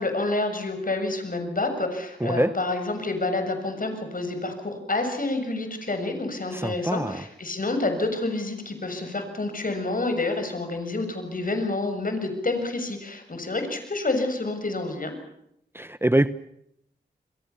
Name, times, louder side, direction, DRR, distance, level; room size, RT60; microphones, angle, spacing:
voice 1, 0.0-15.2, left 2 dB, 50° left, 7 dB, 7.0 m, -28 dB
voice 2, 2.2-2.5 6.5-7.2 15.7-16.3, right 1 dB, 10° right, 14 dB, 1.0 m, -24 dB
29.5 x 23.0 x 7.1 m, 0.77 s
cardioid pair, 40°, 19 cm